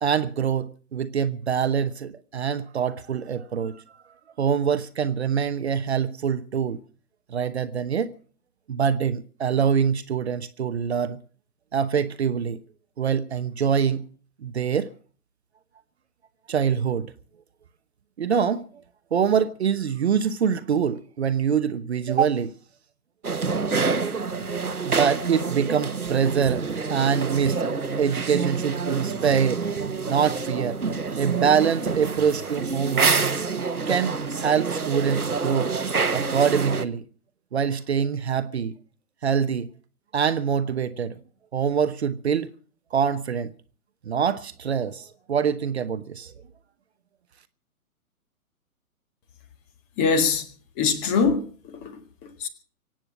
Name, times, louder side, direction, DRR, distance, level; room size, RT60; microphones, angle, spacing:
voice 1, 0.0-3.8 4.4-6.8 7.3-8.1 8.7-11.2 11.7-12.6 13.0-14.0 14.4-14.9 16.5-17.1 18.2-18.7 19.1-22.5 24.8-29.6 30.1-30.8 31.2-33.2 33.9-35.7 36.1-37.0 37.5-38.7 39.2-39.7 40.1-41.2 41.5-42.5 42.9-43.5 44.1-46.3, right 7 dB, 45° right, 1.0 m, -24 dB
sound 1, 23.2-36.9, right 4 dB, 80° right, 1.3 m, -27 dB
voice 2, 50.0-50.4 50.8-52.5, left 5 dB, 20° left, 1.8 m, -24 dB
24.0 x 8.9 x 6.2 m
figure-of-eight pair, 125°, 44 cm